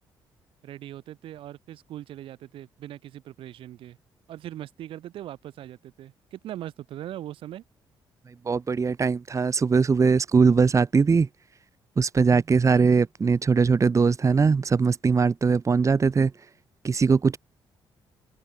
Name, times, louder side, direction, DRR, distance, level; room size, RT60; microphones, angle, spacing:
voice 1, 0.6-4.0 4.3-7.6, right 12 dB, 80° right, 7.9 m, -40 dB
voice 2, 8.4-11.3 12.0-16.3 16.8-17.4, right 5 dB, 35° right, 2.8 m, -21 dB
open air
cardioid pair, 90°, 9 cm